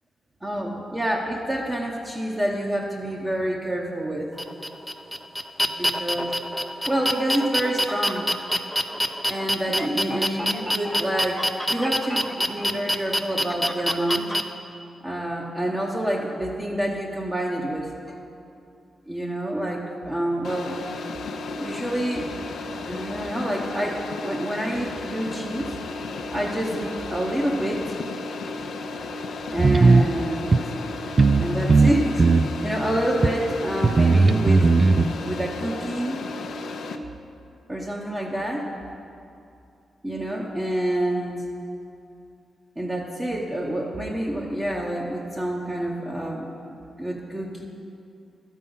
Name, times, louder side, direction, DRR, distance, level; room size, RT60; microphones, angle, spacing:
voice 1, 0.4-4.3 5.8-6.3 6.9-8.3 9.3-14.3 15.0-17.9 19.1-20.8 21.6-22.3 22.8-25.7 26.3-28.0 29.5-30.6 31.4-34.7 35.2-36.2 37.7-38.7 40.0-41.4 42.8-46.5 47.0-47.6, right 1 dB, 20° right, -3 dB, 1.0 m, -27 dB
sound 1, 4.4-14.4, equal, ahead, 0.6 m, -26 dB
sound 2, 20.4-37.0, left 3 dB, 75° left, 0.5 m, -34 dB
sound 3, 29.6-30.1 30.5-30.6 31.2-31.4 31.7-32.5 33.2-33.3 33.8-35.1, right 3 dB, 45° right, 0.4 m, -16 dB
12.0 x 5.5 x 5.5 m, 2.5 s
cardioid pair, 55°, 0 cm